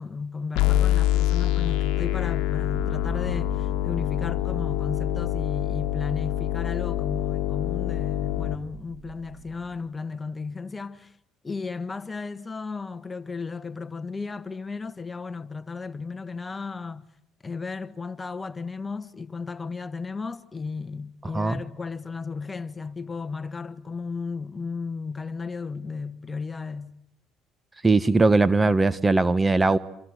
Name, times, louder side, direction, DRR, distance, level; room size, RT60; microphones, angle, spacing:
voice 1, 0.0-11.1 11.4-17.1 17.4-27.0, left 4 dB, 25° left, 1.4 m, -34 dB
sound 1, 0.6-8.6, left 13 dB, 70° left, 1.3 m, -25 dB
sound 2, 2.7-9.8, right 7 dB, 70° right, 4.7 m, -43 dB
voice 2, 27.8-29.8, right 3 dB, 20° right, 1.2 m, -20 dB
28.0 x 25.5 x 8.1 m
supercardioid pair, 75°, 0 cm